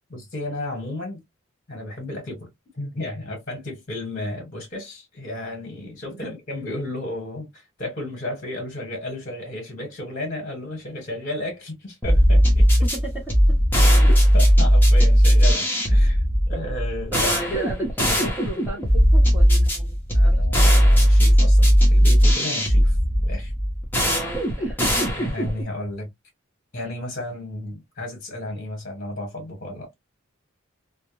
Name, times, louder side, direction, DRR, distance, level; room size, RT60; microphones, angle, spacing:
voice 1, 0.1-1.2 1.7-2.5 2.7-12.7 13.9-17.4 20.1-23.0 23.2-23.5 25.0-26.1 26.7-29.9, left 1 dB, 40° left, 1.1 m, -33 dB
sound 1, 12.0-25.6, equal, 10° left, 0.7 m, -17 dB
voice 2, 12.8-13.3 17.1-20.7 24.1-25.0, right 2 dB, 10° right, 1.0 m, -34 dB
2.2 x 2.1 x 3.0 m
head